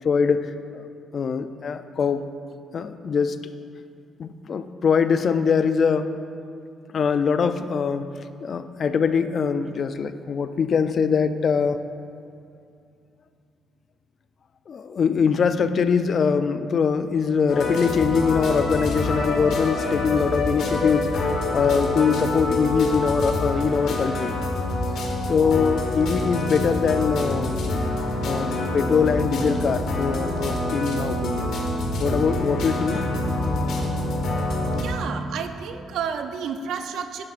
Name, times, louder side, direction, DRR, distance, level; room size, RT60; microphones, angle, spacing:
voice 1, 0.0-0.5 0.7-0.8 1.1-2.2 2.7-3.4 4.2-6.1 6.9-8.1 8.4-11.8 14.7-24.4 25.3-27.6 28.2-31.5 32.0-33.1, left 6 dB, 50° left, 10 dB, 0.4 m, -23 dB
sound 1, 17.5-34.8, left 1 dB, 75° left, 1.4 m, -26 dB
voice 2, 34.7-37.2, right 7 dB, 80° right, 7 dB, 0.6 m, -31 dB
10.5 x 9.9 x 2.5 m, 2.5 s
cardioid pair, 90°, 0 cm